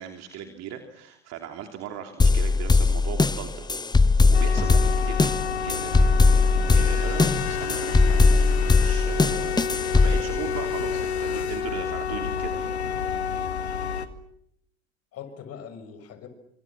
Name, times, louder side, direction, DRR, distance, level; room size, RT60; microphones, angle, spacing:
voice 1, 0.0-3.7 4.3-6.4 6.7-12.7, right 9 dB, 55° right, 5 dB, 3.2 m, -38 dB
sound 1, 2.2-10.2, left 3 dB, 15° left, 1.1 m, -20 dB
sound 2, 4.3-14.1, left 7 dB, 85° left, 1.9 m, -29 dB
voice 2, 6.4-6.8 13.0-13.3 15.1-16.3, left 7 dB, 50° left, 9 dB, 6.5 m, -43 dB
29.0 x 25.5 x 7.4 m, 0.73 s
hypercardioid pair, 70°, 32 cm